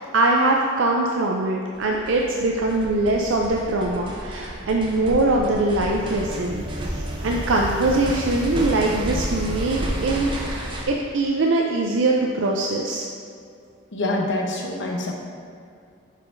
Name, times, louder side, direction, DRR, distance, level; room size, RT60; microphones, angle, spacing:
voice 1, 0.1-13.0, right 2 dB, 70° right, 0 dB, 0.4 m, -22 dB
sound 1, 1.7-10.8, right 1 dB, 25° right, 0.6 m, -31 dB
voice 2, 13.9-15.1, left 2 dB, 65° left, 1 dB, 0.8 m, -25 dB
7.3 x 5.6 x 2.6 m, 2.4 s
head